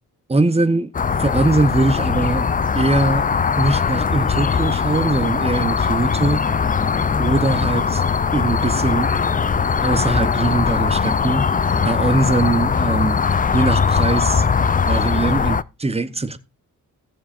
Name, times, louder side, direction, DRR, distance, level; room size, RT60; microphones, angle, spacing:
voice 1, 0.3-0.9 1.2-2.5 2.7-3.3 3.5-6.4 7.2-8.0 8.3-9.2 9.8-11.5 11.8-13.2 13.5-14.4 14.8-16.4, right 3 dB, 20° right, 1.0 m, -21 dB
sound 1, 0.9-15.6, left 6 dB, 25° left, 0.4 m, -20 dB
17.5 x 7.1 x 2.5 m
wide cardioid pair, 105°, 33 cm